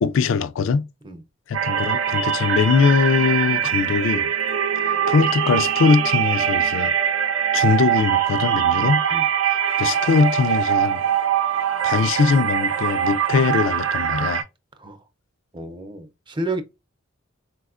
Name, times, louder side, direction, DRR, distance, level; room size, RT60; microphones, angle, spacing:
voice 1, 0.0-0.9 1.5-4.3 5.1-6.9 7.5-9.0 9.8-11.1 11.8-14.4, left 5 dB, 70° left, 0.3 m, -21 dB
sound 1, 1.5-14.4, right 9 dB, 85° right, 0.6 m, -22 dB
voice 2, 8.8-9.3 14.8-15.1 15.5-16.6, right 2 dB, 25° right, 0.5 m, -31 dB
4.1 x 2.2 x 2.4 m
head